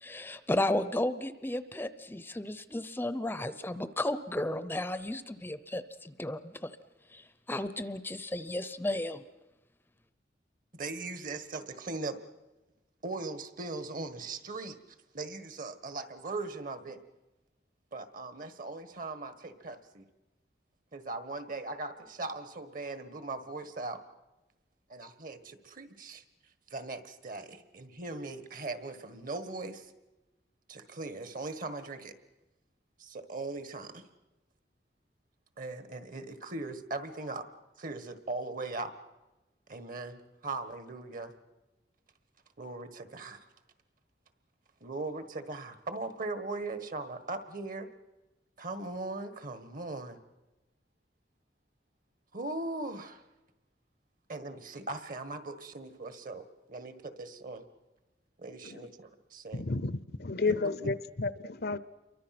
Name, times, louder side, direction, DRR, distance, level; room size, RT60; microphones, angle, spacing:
voice 1, 0.0-6.7 7.1-9.2, left 1 dB, 10° left, 13 dB, 0.7 m, -34 dB
voice 2, 10.7-12.2 13.0-14.8 15.1-17.0 17.9-20.0 20.9-24.0 24.9-26.2 26.7-29.9 30.7-32.1 33.0-34.0 35.6-37.5 37.8-38.9 39.7-41.3 42.6-43.4 44.8-47.9 48.6-50.2 52.3-53.2 54.3-57.6 58.4-59.6 60.4-60.9, right 3 dB, 50° right, 11 dB, 1.6 m, -39 dB
voice 3, 59.5-61.8, left 3 dB, 60° left, 17 dB, 0.8 m, -32 dB
28.5 x 23.5 x 6.0 m, 1.1 s
head